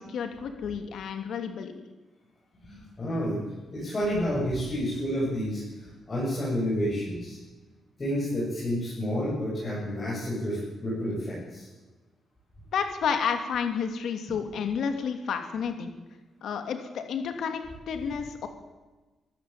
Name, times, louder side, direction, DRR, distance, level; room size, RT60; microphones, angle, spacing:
voice 1, 0.0-1.7 12.7-15.9 16.4-18.5, left 6 dB, 65° left, 6 dB, 2.9 m, -31 dB
voice 2, 2.6-3.4 3.7-7.4 8.0-11.7, equal, 20° left, -7 dB, 7.9 m, -30 dB
24.5 x 15.0 x 9.0 m, 1.2 s
wide cardioid pair, 170°, 0 cm